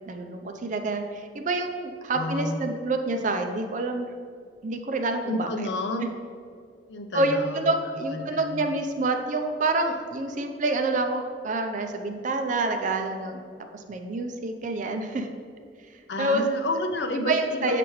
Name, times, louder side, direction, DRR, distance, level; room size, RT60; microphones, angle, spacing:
voice 1, 0.0-4.1 4.6-5.7 7.1-13.4 13.7-15.3 16.2-16.5 17.1-17.8, right 2 dB, 45° right, 5 dB, 0.5 m, -27 dB
voice 2, 2.1-2.6 5.2-6.1 6.9-7.7 8.1-8.6 16.1-17.8, left 2 dB, 80° left, 6 dB, 0.6 m, -30 dB
6.7 x 5.8 x 3.2 m, 2.1 s
head